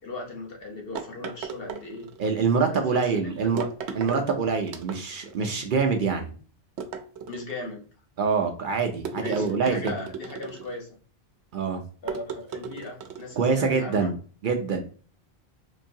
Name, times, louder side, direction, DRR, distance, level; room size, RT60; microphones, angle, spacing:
voice 1, 0.0-2.1 2.7-3.5 7.3-7.8 9.2-11.0 12.0-14.1, left 2 dB, 60° left, 0 dB, 1.1 m, -38 dB
sound 1, 0.9-2.3 3.6-4.2 4.7-5.3 6.8-7.7 9.0-10.8 12.1-13.4, right 6 dB, 90° right, 0.9 m, -36 dB
voice 2, 2.2-3.7 3.9-6.3 8.2-9.9 11.5-11.8 13.4-14.1 14.4-14.8, right 5 dB, 60° right, 4 dB, 0.6 m, -25 dB
3.8 x 2.6 x 2.7 m, 0.40 s
omnidirectional pair, 1.1 m